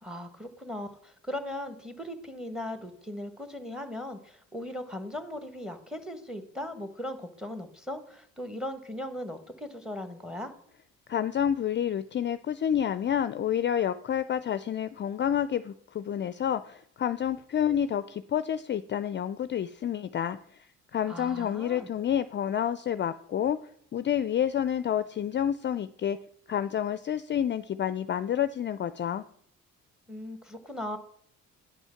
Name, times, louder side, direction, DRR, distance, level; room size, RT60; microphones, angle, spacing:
voice 1, 0.0-10.5 21.0-21.9 30.1-31.0, left 1 dB, ahead, 9 dB, 1.3 m, -38 dB
voice 2, 11.1-20.4 20.9-23.6 23.9-26.2 26.5-29.2, left 9 dB, 40° left, 13 dB, 0.4 m, -29 dB
9.8 x 5.5 x 5.8 m, 0.66 s
cardioid pair, 90°, 30 cm